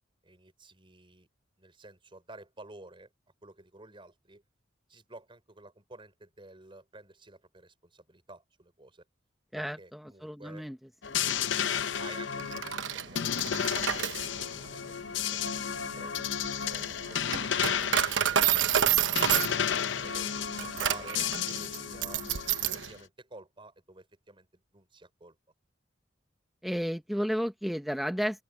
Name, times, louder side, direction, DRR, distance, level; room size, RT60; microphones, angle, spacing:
voice 1, 0.2-1.3 1.6-3.1 3.4-4.4 4.9-9.0 9.5-10.7 12.0-13.9 14.2-15.5 15.8-19.0 19.3-22.3 22.7-25.4, right 2 dB, 30° right, 4.5 m, -52 dB
voice 2, 9.5-10.8 26.6-28.4, equal, ahead, 0.8 m, -32 dB
sound 1, 11.0-22.9, left 8 dB, 75° left, 0.7 m, -33 dB
Coin (dropping), 12.4-22.9, right 9 dB, 80° right, 1.0 m, -30 dB
open air
head